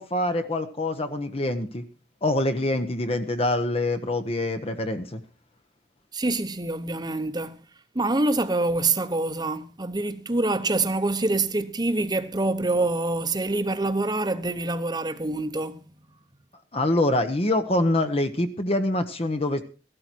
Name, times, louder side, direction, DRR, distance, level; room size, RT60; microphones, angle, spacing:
voice 1, 0.0-1.8 2.2-5.2 16.7-19.6, left 1 dB, 35° left, 1.0 m, -25 dB
voice 2, 6.1-7.6 7.9-15.8, right 2 dB, 25° right, 1.0 m, -26 dB
15.5 x 12.5 x 4.6 m
head